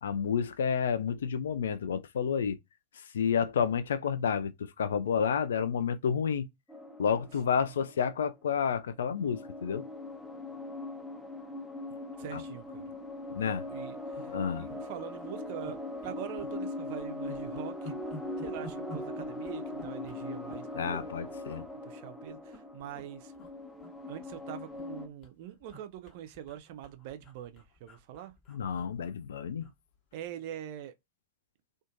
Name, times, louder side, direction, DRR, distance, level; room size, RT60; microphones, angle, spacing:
voice 1, 0.0-2.6 3.1-6.5 7.0-9.8 12.3-12.4 13.3-13.6 14.3-14.6 20.8-21.6 28.5-29.7, left 7 dB, 65° left, 0.3 m, -30 dB
sound 1, 6.7-8.6 9.0-25.1, left 2 dB, 5° left, 0.7 m, -41 dB
voice 2, 7.1-7.7 12.2-12.8 13.7-17.9 18.4-20.9 21.9-23.3 24.0-28.3 30.1-30.9, right 11 dB, 50° right, 0.4 m, -44 dB
sound 2, 12.7-12.8 13.1-13.2 13.4-13.6 14.1-14.8 15.1-15.3 15.6-16.6 16.9-21.1 21.4-21.7 22.3-23.0 23.3-23.5 23.8-24.9 25.2-29.8 30.1-30.3, left 1 dB, 35° left, 0.9 m, -50 dB
2.5 x 2.4 x 2.4 m
figure-of-eight pair, 90°, 0 cm